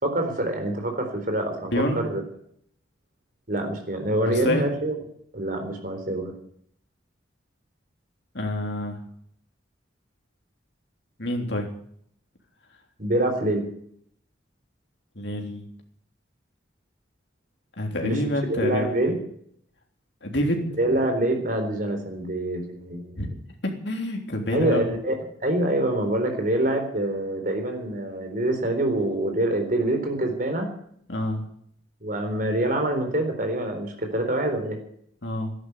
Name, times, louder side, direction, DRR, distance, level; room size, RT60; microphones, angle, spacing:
voice 1, 0.0-2.2 3.5-4.9 5.3-6.3 13.0-13.7 18.0-18.2 18.5-19.2 20.8-23.2 24.5-25.1 25.4-30.7 32.0-34.8, right 1 dB, 45° right, 5 dB, 3.9 m, -25 dB
voice 2, 1.7-2.0 4.2-4.7 8.3-9.0 11.2-11.7 15.1-15.7 17.8-19.0 20.2-20.7 23.1-23.3 23.6-24.9 31.1-31.4 35.2-35.5, left 1 dB, 60° left, 3 dB, 3.4 m, -27 dB
13.5 x 11.0 x 9.6 m, 0.67 s
head